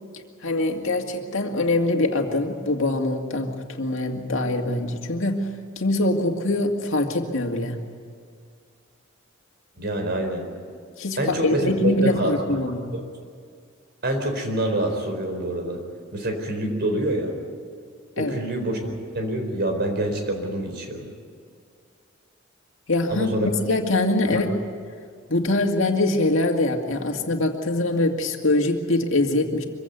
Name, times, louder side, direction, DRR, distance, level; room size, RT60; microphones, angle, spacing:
voice 1, 0.4-7.8 11.0-12.9 18.2-18.4 22.9-23.3 23.6-24.5 25.3-29.6, left 2 dB, 70° left, 3 dB, 2.3 m, -23 dB
voice 2, 9.8-10.5 11.2-12.6 12.9-13.0 14.0-15.8 16.1-17.3 18.2-21.0 23.1-23.5 24.2-24.4, right 1 dB, 55° right, 4 dB, 4.4 m, -26 dB
24.5 x 16.0 x 9.5 m, 2.1 s
head